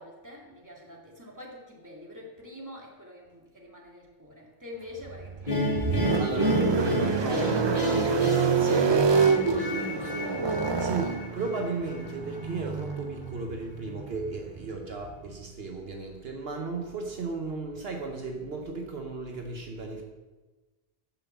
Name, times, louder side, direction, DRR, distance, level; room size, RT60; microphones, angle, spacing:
voice 1, 0.0-5.9 9.9-11.2, left 1 dB, 15° right, -3 dB, 2.2 m, -46 dB
sound 1, 5.0-15.3, right 5 dB, 40° right, 0.4 m, -27 dB
sound 2, 5.5-12.6, left 2 dB, 50° left, 1.6 m, -32 dB
voice 2, 6.2-9.3 10.8-11.1 11.4-20.0, right 3 dB, 70° right, 2 dB, 1.2 m, -35 dB
10.5 x 5.9 x 7.1 m, 1.2 s
omnidirectional pair, 1.1 m